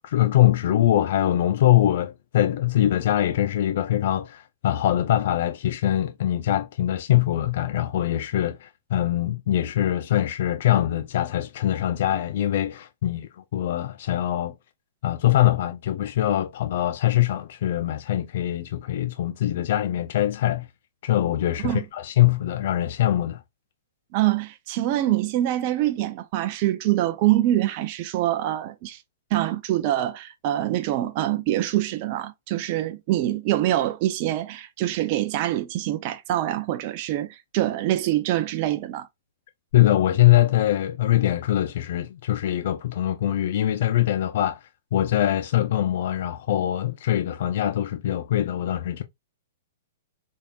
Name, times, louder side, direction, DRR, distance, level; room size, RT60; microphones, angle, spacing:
voice 1, 0.0-14.6 15.0-20.7 21.0-23.4 39.7-44.6 44.9-49.0, left 13 dB, 60° left, 0.5 m, -23 dB
voice 2, 24.1-29.0 29.3-39.1, right 14 dB, 45° right, 0.6 m, -25 dB
4.1 x 3.5 x 2.5 m
hypercardioid pair, 120°, 0 cm